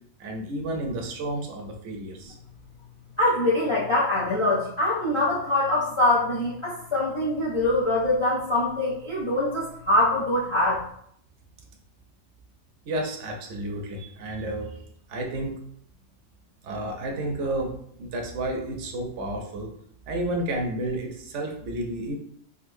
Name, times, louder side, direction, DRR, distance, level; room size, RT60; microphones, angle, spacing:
voice 1, 0.2-2.4 12.9-14.8 15.1-15.6 16.6-17.7 18.0-19.7 20.1-22.2, right 1 dB, 80° right, 2 dB, 1.0 m, -31 dB
voice 2, 3.2-10.8, left 1 dB, 35° left, -6 dB, 0.5 m, -23 dB
3.8 x 2.6 x 2.6 m, 0.68 s
omnidirectional pair, 1.2 m